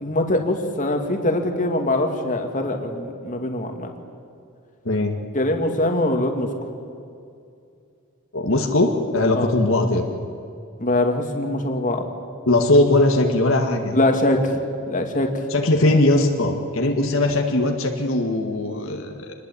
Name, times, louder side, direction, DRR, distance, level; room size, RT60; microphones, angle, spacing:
voice 1, 0.0-3.9 5.3-6.7 9.3-9.5 10.8-12.0 13.9-14.4 14.9-15.4, left 1 dB, 35° left, 4 dB, 2.4 m, -23 dB
voice 2, 8.3-10.1 12.5-13.9 15.5-19.3, left 2 dB, 65° left, 2 dB, 1.9 m, -20 dB
26.5 x 20.5 x 8.6 m, 2.5 s
head